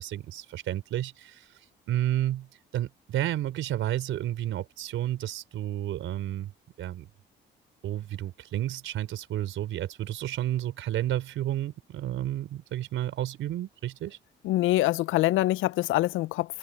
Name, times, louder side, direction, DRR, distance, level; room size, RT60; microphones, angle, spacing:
voice 1, 0.0-1.5 1.9-2.5 2.7-6.5 6.8-7.1 7.8-14.2, right 12 dB, 80° right, 4.9 m, -31 dB
voice 2, 14.4-16.6, left 17 dB, 85° left, 0.4 m, -25 dB
cardioid pair, 90°, 20 cm